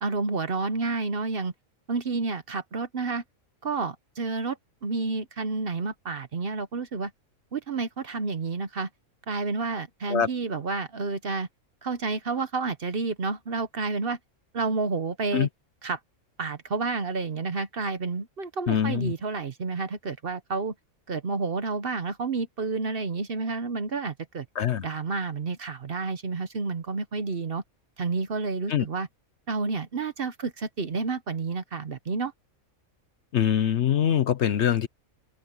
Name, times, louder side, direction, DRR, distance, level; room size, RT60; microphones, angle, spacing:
voice 1, 0.0-1.5 1.9-3.2 3.6-7.1 7.5-8.9 9.3-11.5 11.8-14.2 14.5-15.5 15.8-16.0 16.4-20.7 21.1-24.4 24.8-27.6 28.0-29.1 29.5-32.3, right 4 dB, 45° right, 1.0 m, -30 dB
voice 2, 18.7-19.1 24.6-24.9 28.7-28.9 33.3-34.9, left 9 dB, 60° left, 0.9 m, -23 dB
open air
omnidirectional pair, 1.5 m